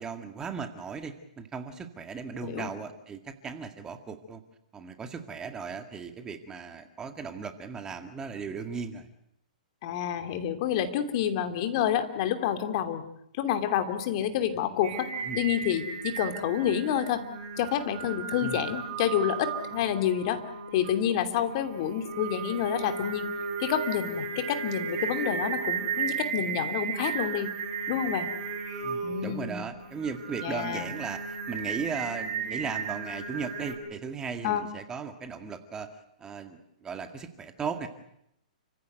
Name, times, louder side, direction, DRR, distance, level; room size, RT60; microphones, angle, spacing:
voice 1, 0.0-4.4 4.7-9.1 15.3-15.4 18.4-18.6 28.8-35.9 36.2-37.9, right 5 dB, 15° right, 7 dB, 2.0 m, -37 dB
voice 2, 9.8-13.0 13.4-15.1 15.3-17.2 17.6-20.4 20.7-23.3 23.6-27.5 27.9-28.3 29.0-29.7 30.4-30.9 34.4-34.7, left 10 dB, 45° left, 8 dB, 2.8 m, -28 dB
Singing, 14.8-33.7, right 5 dB, 45° right, 6.4 m, -35 dB
29.5 x 16.0 x 9.4 m, 0.78 s
hypercardioid pair, 145°, 4 cm